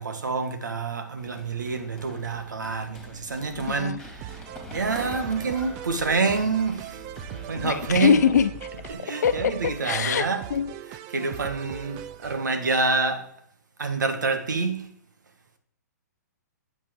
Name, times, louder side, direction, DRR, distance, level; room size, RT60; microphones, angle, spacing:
voice 1, 0.0-4.3 4.7-7.0 7.3-8.2 8.9-10.5 10.9-13.3 13.8-14.9, right 4 dB, 85° right, 1.4 m, -27 dB
Run, 1.2-8.9, left 1 dB, 5° left, 2.6 m, -44 dB
voice 2, 3.7-4.0 7.6-8.5 9.2-10.7, left 7 dB, 65° left, 0.9 m, -23 dB
sound 1, 4.2-12.5, right 12 dB, 30° right, 0.4 m, -40 dB
8.7 x 8.0 x 3.6 m
hypercardioid pair, 135°, 10 cm